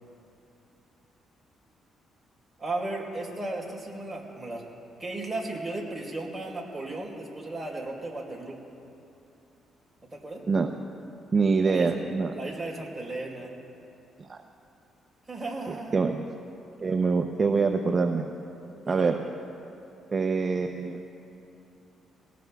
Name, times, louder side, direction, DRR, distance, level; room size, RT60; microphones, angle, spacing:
voice 1, 2.6-4.6 5.0-8.6 10.1-10.4 11.7-12.0 12.3-13.5 15.3-16.0 18.8-19.1, right 2 dB, 15° right, -4 dB, 4.0 m, -35 dB
voice 2, 11.3-12.3 14.2-14.4 15.9-16.2 16.8-18.2 18.9-19.2 20.1-21.0, right 4 dB, 35° right, 5 dB, 0.6 m, -25 dB
22.5 x 18.5 x 2.3 m, 2.8 s
cardioid pair, 90°, 0 cm